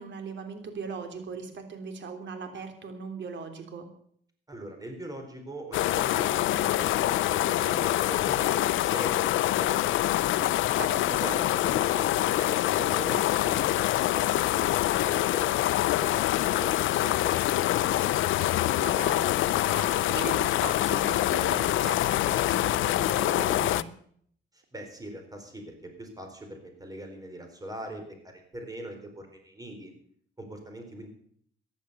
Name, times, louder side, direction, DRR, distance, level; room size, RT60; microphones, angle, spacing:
voice 1, 0.0-3.9 10.8-11.2 18.8-23.9, right 5 dB, 65° right, 6 dB, 3.3 m, -39 dB
voice 2, 4.5-10.5 11.2-18.4 24.5-29.9 30.4-31.1, right 1 dB, 20° right, 4 dB, 4.2 m, -42 dB
sound 1, 5.7-23.8, left 14 dB, 80° left, 0.6 m, -25 dB
15.0 x 10.5 x 6.8 m, 0.63 s
cardioid pair, 90°, 20 cm